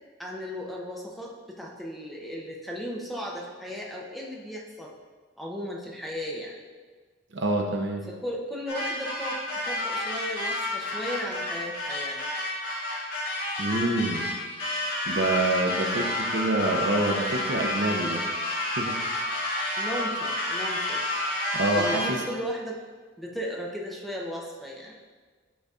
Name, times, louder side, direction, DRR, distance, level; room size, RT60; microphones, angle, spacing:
voice 1, 0.2-4.9 5.4-6.6 8.1-9.4 9.6-12.3 19.8-21.0 21.7-22.8 23.2-25.0, equal, ahead, -3 dB, 0.6 m, -35 dB
voice 2, 7.3-8.0 13.6-14.3 15.1-18.2 18.8-19.0 21.5-22.2, right 2 dB, 60° right, 2 dB, 0.7 m, -26 dB
sound 1, 8.7-22.4, left 1 dB, 55° left, 1.6 m, -30 dB
10.5 x 4.0 x 2.4 m, 1.5 s
head